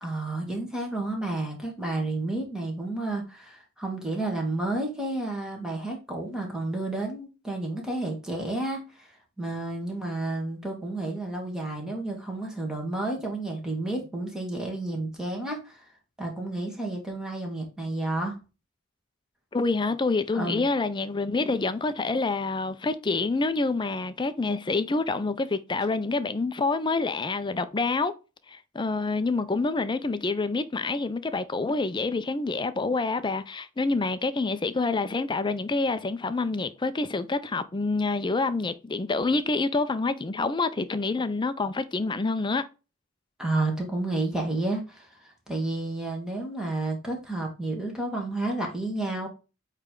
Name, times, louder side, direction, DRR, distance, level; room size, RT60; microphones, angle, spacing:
voice 1, 0.0-15.8 16.2-18.4 20.3-20.7 43.4-45.2 45.5-49.3, right 2 dB, 5° right, 1.9 m, -31 dB
voice 2, 19.5-28.1 28.5-42.6, left 3 dB, 20° left, 0.5 m, -27 dB
8.4 x 3.3 x 3.8 m
head